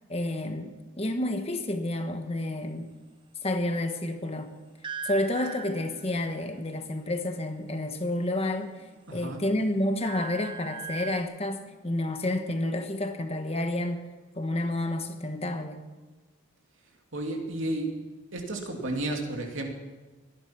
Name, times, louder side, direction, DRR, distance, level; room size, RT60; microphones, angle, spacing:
voice 1, 0.1-2.9 3.4-4.5 5.0-14.1 14.3-15.8, left 1 dB, 30° left, 6 dB, 1.3 m, -30 dB
sound 1, 4.8-6.3 8.3-9.0 9.4-11.2, right 6 dB, 25° right, 0.7 m, -39 dB
voice 2, 9.1-9.4 17.1-17.9 18.3-19.7, right 1 dB, 70° right, 1 dB, 2.9 m, -32 dB
22.5 x 11.0 x 5.9 m, 1.2 s
head